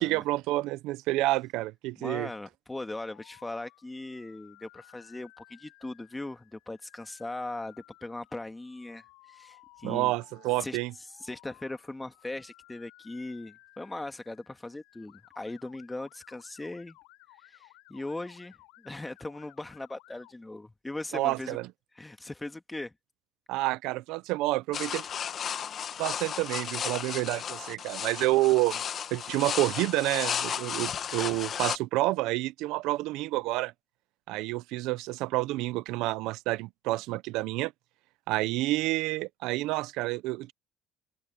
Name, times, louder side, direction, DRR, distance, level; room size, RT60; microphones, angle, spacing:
voice 1, 0.0-2.3 9.8-10.9 21.1-21.6 23.5-25.0 26.0-28.8 29.1-33.7 34.3-37.7 38.3-40.5, right 19 dB, 80° right, 0.7 m, -29 dB
voice 2, 2.0-10.2 10.6-10.8 11.1-17.0 17.4-21.6 22.0-22.9, left 2 dB, 15° left, 2.0 m, -39 dB
Motor vehicle (road) / Siren, 3.0-20.3, left 27 dB, 85° left, 7.5 m, -58 dB
sound 1, 24.7-31.8, left 8 dB, 50° left, 1.8 m, -34 dB
supercardioid pair, 85°, 0 cm